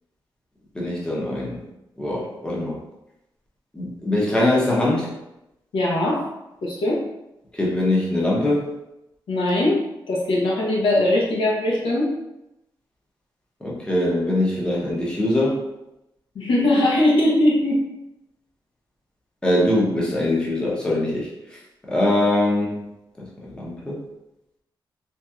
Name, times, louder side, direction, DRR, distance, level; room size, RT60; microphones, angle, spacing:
voice 1, 0.7-1.6 2.0-2.8 3.7-5.1 7.5-8.7 13.6-15.7 19.4-21.3 21.9-22.9 23.2-24.0, left 1 dB, 10° left, -5 dB, 0.7 m, -22 dB
voice 2, 5.7-6.2 6.6-7.0 9.3-12.1 16.3-17.8, left 1 dB, 85° left, -4 dB, 0.9 m, -20 dB
3.2 x 2.8 x 2.3 m, 0.90 s
wide cardioid pair, 140°, 8 cm